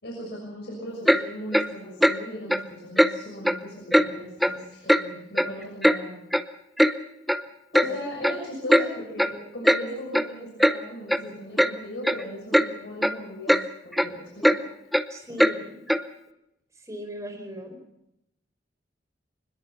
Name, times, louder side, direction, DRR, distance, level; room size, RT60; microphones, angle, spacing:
voice 1, 0.0-6.2 7.7-13.6 13.8-14.6, left 1 dB, 70° left, -2 dB, 6.4 m, -38 dB
Clock, 1.1-1.2 1.5-1.7 2.0-2.2 2.5-2.6 3.0-3.1 3.4-3.6 3.9-4.1 4.4-4.6 4.9-5.0 5.4-6.0 6.3-6.4 6.8-6.9 7.3-7.4 7.7-7.9 8.2-8.4 8.7-8.9 9.2-9.3 9.6-9.8 10.1-10.3 10.6-10.8 11.1-11.2 11.6-11.7 12.0-12.2 12.5-12.7 13.0-13.2 13.5-13.6 13.9-14.1 14.4-14.6 14.9-15.0 15.4-15.5 15.9-16.0, equal, ahead, 0.7 m, -20 dB
voice 2, 15.1-15.9 16.7-17.8, equal, 20° right, 4 dB, 4.7 m, -39 dB
23.5 x 21.0 x 5.9 m, 0.84 s
head